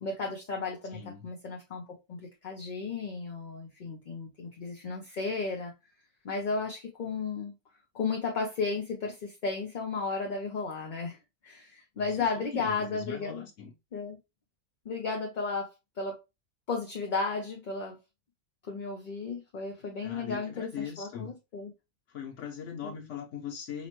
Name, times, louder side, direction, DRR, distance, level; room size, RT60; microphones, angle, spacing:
voice 1, 0.0-5.7 6.2-7.5 7.9-11.2 11.4-13.4 13.9-14.2 14.8-15.7 16.0-16.2 16.7-18.0 18.7-21.7 22.8-22.9, left 4 dB, 45° left, 0.7 m, -34 dB
voice 2, 0.9-1.3 11.9-13.7 20.0-21.3 22.1-23.9, left 7 dB, 90° left, 1.1 m, -40 dB
5.0 x 2.1 x 2.9 m
omnidirectional pair, 1.2 m